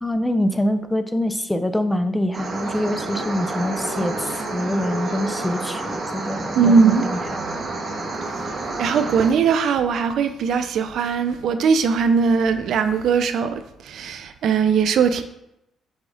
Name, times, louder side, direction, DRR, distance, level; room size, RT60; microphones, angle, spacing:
voice 1, 0.0-7.2, left 1 dB, 5° left, 0.4 m, -25 dB
sound 1, 2.3-9.3, right 2 dB, 50° right, 0.7 m, -29 dB
voice 2, 6.6-7.1 8.8-15.2, right 6 dB, 70° right, 0.3 m, -19 dB
5.0 x 2.4 x 3.8 m
cardioid pair, 90°, 0 cm